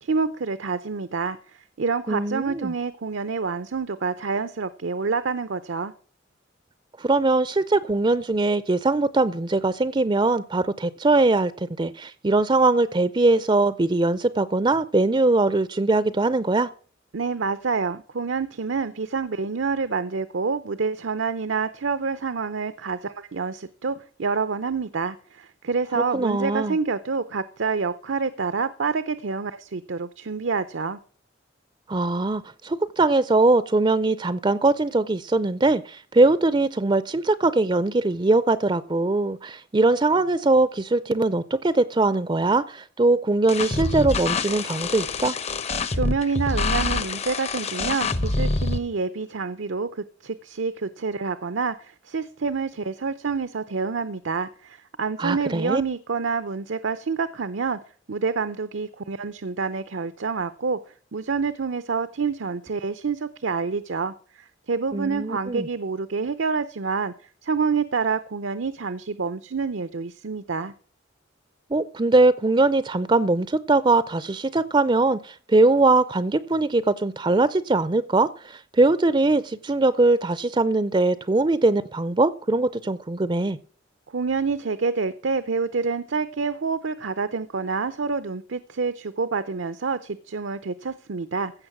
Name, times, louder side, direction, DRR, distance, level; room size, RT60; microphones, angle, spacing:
voice 1, 0.0-5.9 17.1-31.0 45.9-57.8 58.1-60.8 61.1-67.1 67.4-70.7 84.1-91.5, right 4 dB, 70° right, 0.7 m, -27 dB
voice 2, 2.1-2.7 7.0-16.7 25.9-26.8 31.9-45.3 55.2-55.8 64.9-65.7 71.7-83.6, right 2 dB, 25° right, 0.5 m, -21 dB
sound 1, 43.5-48.8, left 3 dB, 35° left, 0.8 m, -26 dB
15.5 x 6.5 x 6.0 m
head